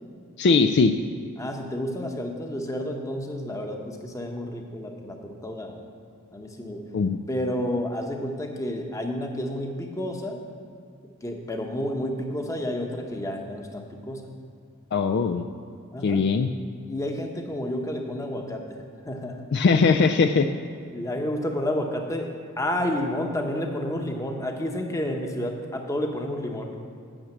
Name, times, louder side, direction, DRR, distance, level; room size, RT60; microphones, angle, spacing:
voice 1, 0.4-0.9 6.9-7.2 14.9-15.4 16.0-16.5 19.5-20.5, left 4 dB, 50° left, 6 dB, 0.3 m, -20 dB
voice 2, 1.4-5.8 6.3-6.8 7.3-10.4 11.2-14.3 15.9-16.2 16.9-19.5 20.9-22.3 22.6-26.7, left 1 dB, 15° left, 2 dB, 0.9 m, -30 dB
8.8 x 6.4 x 7.7 m, 2.3 s
head